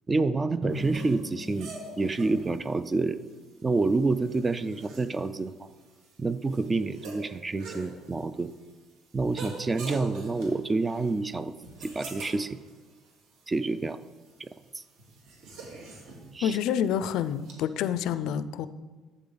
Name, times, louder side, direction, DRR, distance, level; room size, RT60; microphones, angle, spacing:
voice 1, 0.1-1.7 2.0-3.2 3.6-5.7 6.2-8.5 9.1-11.5 11.8-12.6 13.5-14.0 14.4-14.5 14.7-14.8 16.3-16.6, right 3 dB, 15° right, 14 dB, 0.3 m, -28 dB
Drum, 0.6-3.3, right 1 dB, 40° right, 2.4 m, -39 dB
sound 1, 0.7-17.5, right 3 dB, 75° right, 2.4 m, -46 dB
voice 2, 16.4-18.7, left 9 dB, 65° left, 14 dB, 0.4 m, -28 dB
12.0 x 8.3 x 4.0 m, 1.3 s
cardioid pair, 165°, 0 cm